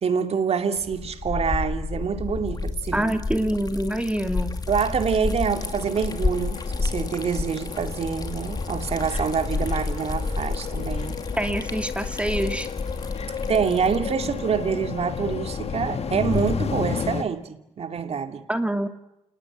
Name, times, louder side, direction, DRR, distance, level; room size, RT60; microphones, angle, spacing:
voice 1, 0.0-3.1 4.7-11.2 13.5-18.4, right 6 dB, 60° right, 2.5 m, -26 dB
Liquid, 0.8-16.9, left 3 dB, 35° left, 2.4 m, -31 dB
voice 2, 2.9-4.6 11.4-12.7 18.5-18.9, right 1 dB, 10° right, 2.4 m, -25 dB
sound 1, 5.5-17.2, left 6 dB, 60° left, 1.8 m, -33 dB
28.0 x 20.0 x 9.0 m
cardioid pair, 60°, 12 cm